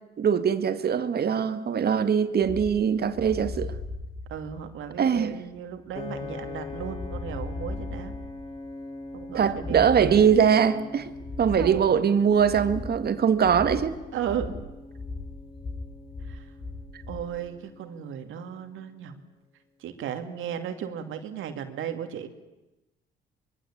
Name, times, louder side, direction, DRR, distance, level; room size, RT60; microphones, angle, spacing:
voice 1, 0.2-3.7 5.0-5.4 9.3-11.1 11.4-14.0, right 7 dB, 50° right, 1.9 m, -22 dB
sound 1, 2.4-17.3, left 3 dB, 50° left, 6.8 m, -38 dB
voice 2, 4.3-8.1 9.1-10.2 11.6-11.8 14.1-14.5 16.3-16.5 17.1-19.2 19.8-22.3, right 9 dB, 85° right, 2.6 m, -35 dB
Piano, 6.0-18.2, left 3 dB, 30° left, 3.7 m, -43 dB
24.5 x 22.5 x 8.7 m
cardioid pair, 90°, 20 cm